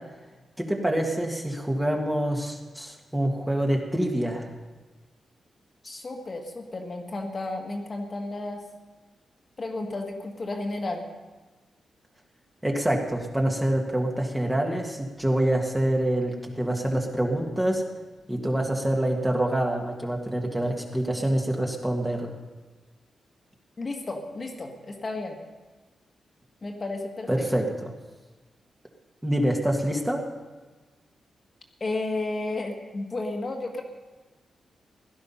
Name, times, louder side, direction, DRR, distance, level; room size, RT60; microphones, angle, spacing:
voice 1, 0.6-4.5 12.6-17.8 18.3-22.3 27.3-27.9 29.2-30.2, right 1 dB, 10° right, 0 dB, 1.7 m, -26 dB
voice 2, 5.8-8.6 9.6-11.1 23.8-25.4 26.6-27.4 31.8-33.8, left 2 dB, 30° left, 2 dB, 1.7 m, -32 dB
16.5 x 12.0 x 5.6 m, 1.3 s
wide cardioid pair, 140°, 0 cm